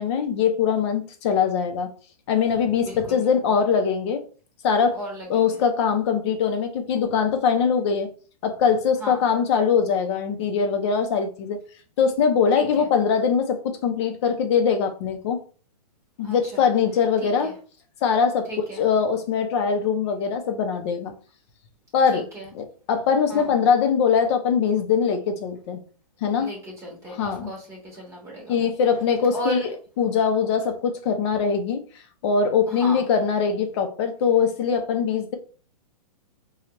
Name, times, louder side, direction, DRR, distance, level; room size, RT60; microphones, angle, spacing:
voice 1, 0.0-1.9 2.3-4.2 4.6-5.0 5.3-8.1 8.4-11.6 12.0-15.4 16.2-17.5 18.0-21.1 21.9-22.3 22.5-25.8 26.2-26.5 27.1-27.5 28.5-29.6 30.0-31.8 32.2-35.4, left 6 dB, 45° left, 0.7 m, -22 dB
voice 2, 2.8-3.2 4.9-5.6 9.0-9.2 12.5-12.9 16.2-16.6 17.2-17.5 18.5-18.8 22.1-22.5 23.3-23.5 26.4-28.7 29.3-29.7 32.7-33.0, right 1 dB, 15° right, 1.2 m, -36 dB
4.4 x 2.4 x 3.0 m
hypercardioid pair, 140°, 20 cm